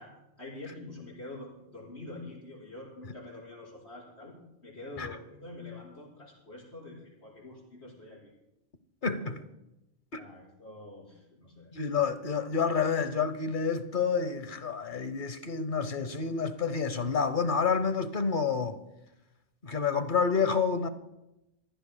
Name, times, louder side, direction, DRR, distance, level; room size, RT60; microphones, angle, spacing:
voice 1, 0.0-4.4 4.6-8.3 9.1-9.3 10.2-12.1, left 2 dB, 80° left, 5.7 m, -46 dB
voice 2, 9.0-9.4 10.1-10.2 11.7-18.8 19.6-20.9, left 5 dB, 50° left, 1.0 m, -29 dB
28.0 x 15.0 x 2.2 m
omnidirectional pair, 1.1 m